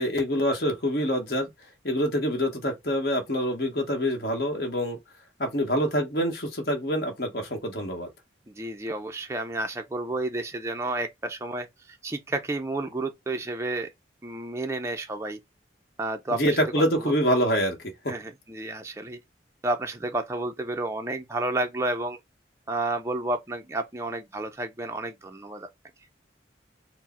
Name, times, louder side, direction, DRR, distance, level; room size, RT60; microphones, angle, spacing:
voice 1, 0.0-1.5 1.8-5.0 5.4-8.1 16.3-17.8, equal, 55° left, 1.1 m, -26 dB
voice 2, 8.5-13.9 14.2-15.4 16.0-16.6 17.0-17.1 18.1-19.2 19.6-22.2 22.7-25.7, right 2 dB, 15° right, 0.4 m, -31 dB
4.6 x 2.0 x 4.1 m
head